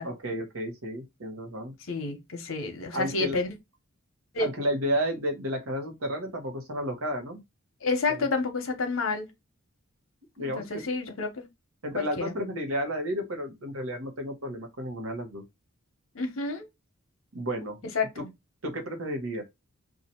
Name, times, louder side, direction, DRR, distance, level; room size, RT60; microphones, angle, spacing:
voice 1, 0.0-1.7 2.9-3.4 4.4-7.4 8.1-8.2 10.4-10.8 11.8-15.4 17.3-17.8 18.2-18.3 18.6-19.4, equal, 85° right, 1.0 m, -32 dB
voice 2, 1.9-3.5 4.3-4.5 7.8-9.3 10.4-11.5 11.9-12.3 16.1-16.7 17.9-18.3, left 3 dB, 70° left, 0.8 m, -30 dB
2.7 x 2.4 x 4.2 m
head